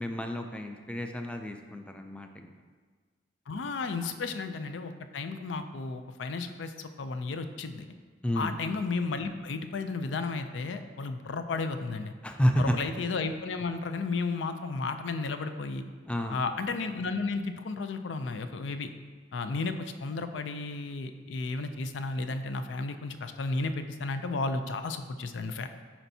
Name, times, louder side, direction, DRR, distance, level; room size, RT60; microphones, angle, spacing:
voice 1, 0.0-2.5 4.0-4.1 8.2-8.5 12.2-12.7 16.1-16.4, equal, 5° left, 5 dB, 0.4 m, -30 dB
voice 2, 3.5-7.9 8.4-12.1 12.6-15.9 16.3-18.9 19.3-25.7, left 3 dB, 80° left, 8 dB, 0.4 m, -33 dB
10.0 x 4.4 x 2.7 m, 1.5 s
head